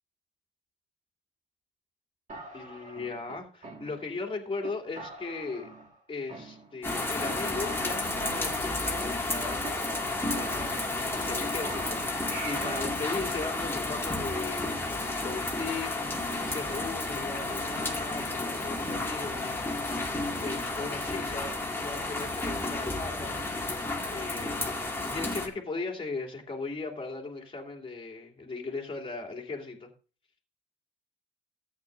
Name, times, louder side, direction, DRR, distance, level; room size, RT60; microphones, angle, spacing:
sound 1, 2.3-4.2 4.6-4.7 5.0-6.0 6.3-7.0 7.3-7.4 7.6-9.7 10.0-10.1 10.3-11.3 11.6-13.0, right 2 dB, 40° right, 2.6 m, -44 dB
voice 1, 2.5-5.7 6.1-10.7 11.1-19.7 20.4-23.4 24.1-29.9, left 3 dB, 25° left, 2 dB, 2.8 m, -38 dB
sound 2, 6.8-25.5, left 2 dB, 10° left, 2.3 m, -32 dB
13.5 x 8.8 x 2.6 m, 0.35 s
cardioid pair, 90°, 20 cm